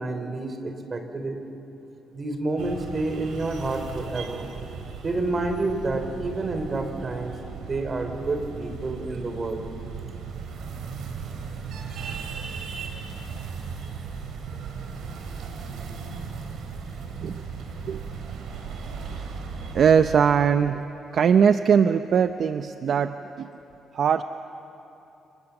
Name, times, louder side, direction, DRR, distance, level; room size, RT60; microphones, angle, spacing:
voice 1, 0.0-1.4 2.1-4.5 5.0-7.3 7.7-9.7, right 2 dB, 35° right, 7 dB, 4.0 m, -29 dB
sound 1, 2.6-20.2, right 5 dB, 75° right, 3.9 m, -36 dB
voice 2, 19.7-20.8 21.1-23.5 23.9-24.2, right 7 dB, 60° right, 10 dB, 0.7 m, -21 dB
28.5 x 28.0 x 7.2 m, 3.0 s
cardioid pair, 90°, 0 cm